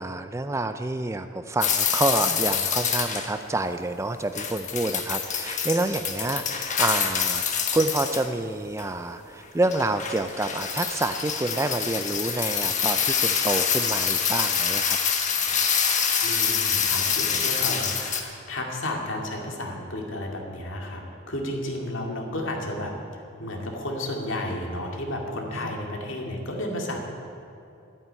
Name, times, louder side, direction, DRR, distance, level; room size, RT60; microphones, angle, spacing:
voice 1, 0.0-15.0, right 2 dB, 15° right, 9 dB, 0.4 m, -28 dB
sound 1, 1.6-3.3 4.3-8.3 8.8-8.9 9.6-18.2, left 7 dB, 35° left, 1.3 m, -26 dB
voice 2, 16.2-22.9 23.4-27.0, left 1 dB, 65° left, 1 dB, 2.4 m, -32 dB
12.0 x 9.0 x 9.5 m, 2.7 s
head